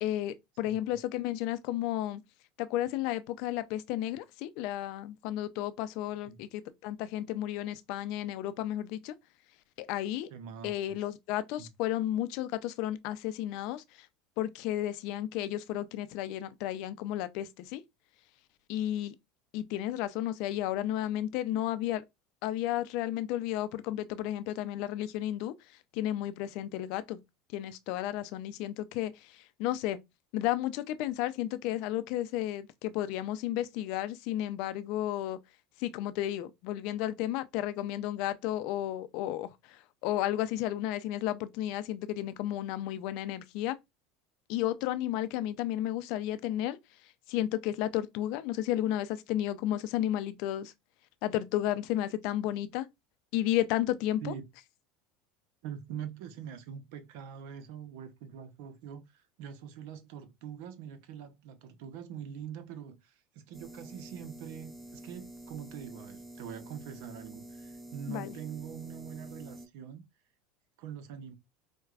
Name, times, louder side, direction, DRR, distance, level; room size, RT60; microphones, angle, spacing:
voice 1, 0.0-2.2 2.6-9.1 9.8-10.3 10.6-14.1 14.4-17.8 18.7-19.1 19.5-22.0 22.4-25.5 25.9-27.2 27.5-30.0 30.3-35.4 35.8-43.8 44.5-46.8 47.3-50.7 51.2-52.9 53.3-54.3 68.1-68.4, left 13 dB, 65° left, 0.4 m, -33 dB
voice 2, 10.3-11.0 11.6-11.7 54.2-54.4 55.6-70.0 70.8-71.3, right 8 dB, 70° right, 0.7 m, -44 dB
sound 1, 63.5-69.7, right 1 dB, 15° right, 0.7 m, -48 dB
4.6 x 2.2 x 2.4 m
hypercardioid pair, 100°, 0 cm